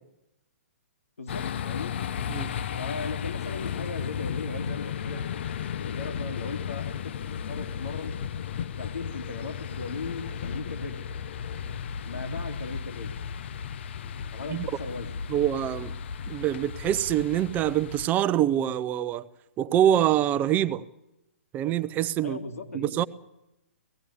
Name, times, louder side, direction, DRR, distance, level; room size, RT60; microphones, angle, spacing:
voice 1, 1.2-2.0 2.8-5.2 5.9-7.1 7.5-8.1 8.8-11.1 12.0-13.2 14.3-15.2 22.2-23.1, left 3 dB, 70° left, 2.3 m, -37 dB
sound 1, 1.3-18.1, left 8 dB, 50° left, 0.7 m, -34 dB
voice 2, 15.3-16.0 16.3-19.3 19.6-20.8 21.5-22.4 22.7-23.0, right 11 dB, 20° right, 0.7 m, -25 dB
18.5 x 15.0 x 9.9 m
figure-of-eight pair, 125°, 8 cm